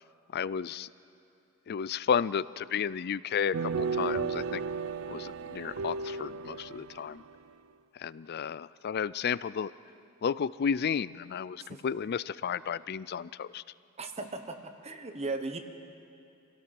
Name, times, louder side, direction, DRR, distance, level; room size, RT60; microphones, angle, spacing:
voice 1, 0.3-0.9 1.7-4.6 5.1-7.2 8.0-9.7 10.2-13.6, left 7 dB, 50° left, 19 dB, 0.4 m, -32 dB
sound 1, 3.5-7.3, right 4 dB, 70° right, 0.5 m, -34 dB
voice 2, 14.0-15.6, right 3 dB, 30° right, 6 dB, 1.2 m, -37 dB
26.5 x 17.0 x 6.1 m, 2.6 s
head